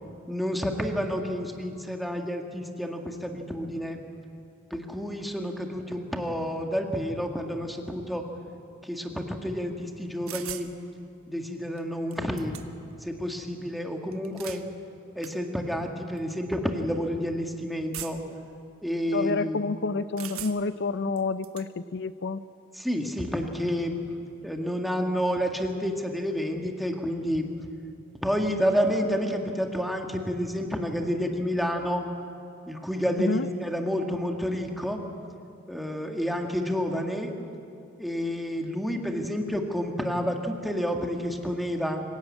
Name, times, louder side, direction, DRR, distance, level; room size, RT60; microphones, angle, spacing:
voice 1, 0.3-4.0 4.7-8.2 8.8-10.7 11.3-12.6 13.0-14.6 15.2-18.2 18.8-19.6 22.7-24.0 24.4-27.5 28.2-32.1 32.7-35.0 35.7-37.4 38.0-42.0, equal, ahead, 2 dB, 1.9 m, -29 dB
sound 1, 10.3-10.7 11.8-11.9 12.1-12.9 14.1-14.6 15.2-15.3 16.2-16.3 17.9-18.4 20.2-20.8 21.2-21.7, right 12 dB, 80° right, 1.3 m, -39 dB
voice 2, 19.1-22.4 33.2-33.5, left 3 dB, 55° left, 13 dB, 0.6 m, -29 dB
25.5 x 17.0 x 8.7 m, 2.6 s
head